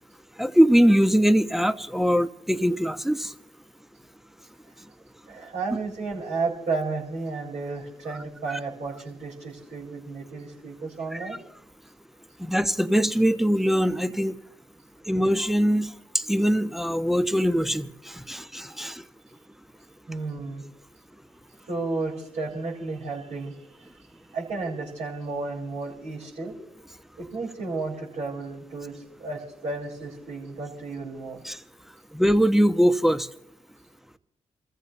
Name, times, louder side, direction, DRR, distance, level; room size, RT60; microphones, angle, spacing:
voice 1, 0.4-3.3 8.5-8.6 11.1-11.3 12.4-14.4 15.1-15.9 16.1-19.0 31.4-31.6 32.1-33.3, equal, ahead, 1.0 m, -22 dB
voice 2, 5.3-11.4 20.1-20.6 21.6-23.9 24.3-26.5 27.2-31.4, right 3 dB, 60° right, 5.2 m, -33 dB
28.0 x 14.5 x 3.2 m
hypercardioid pair, 45°, 15 cm